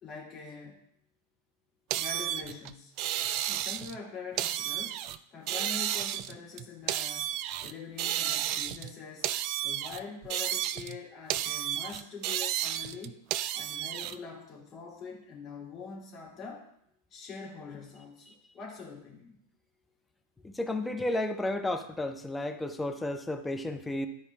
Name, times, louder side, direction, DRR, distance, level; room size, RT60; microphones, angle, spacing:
voice 1, 0.0-0.8 1.9-2.9 3.5-7.3 7.6-9.3 9.6-13.2 13.5-16.7 17.1-19.4, left 5 dB, 30° left, -3 dB, 2.5 m, -44 dB
sound 1, 1.9-4.0 4.4-5.2 5.5-7.7 8.0-8.9 9.2-11.0 11.3-14.1, right 12 dB, 40° right, 0.3 m, -32 dB
voice 2, 20.4-24.1, left 1 dB, 5° left, 5 dB, 0.7 m, -32 dB
12.0 x 4.6 x 3.3 m, 0.72 s
figure-of-eight pair, 90°, 0 cm